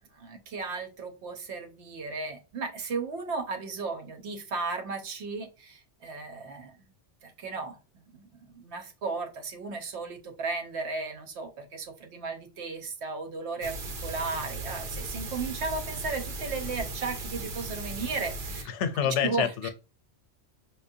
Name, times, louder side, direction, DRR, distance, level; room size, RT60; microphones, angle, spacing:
voice 1, 0.1-6.9 7.2-7.8 8.1-13.7 14.0-18.7 19.2-19.7, right 4 dB, 75° right, 1.0 m, -35 dB
sound 1, 13.6-18.6, right 2 dB, 55° right, 0.7 m, -37 dB
voice 2, 18.7-19.7, left 8 dB, 90° left, 0.9 m, -27 dB
5.4 x 2.0 x 2.6 m
omnidirectional pair, 1.2 m